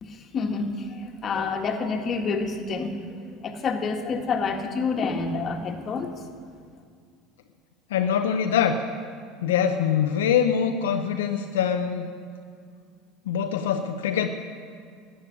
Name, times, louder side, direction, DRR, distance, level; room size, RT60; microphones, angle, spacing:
voice 1, 0.0-2.9 3.4-6.1, left 4 dB, 40° left, 4 dB, 1.7 m, -28 dB
voice 2, 7.9-8.8 9.4-12.0 13.3-14.3, left 8 dB, 85° left, 6 dB, 0.7 m, -23 dB
12.0 x 8.9 x 9.8 m, 2.2 s
hypercardioid pair, 85°, 0 cm